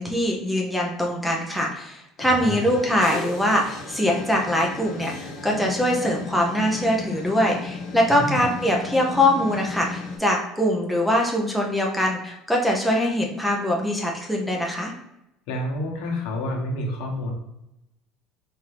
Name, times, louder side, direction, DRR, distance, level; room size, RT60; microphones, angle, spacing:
voice 1, 0.0-14.9, left 1 dB, ahead, -2 dB, 0.5 m, -23 dB
voice 2, 2.2-2.7 8.1-8.4 15.5-17.3, left 1 dB, 80° left, 0 dB, 1.0 m, -29 dB
sound 1, 2.2-10.2, left 3 dB, 65° left, 1.2 m, -35 dB
4.4 x 2.6 x 3.2 m, 0.86 s
cardioid pair, 160°, 0 cm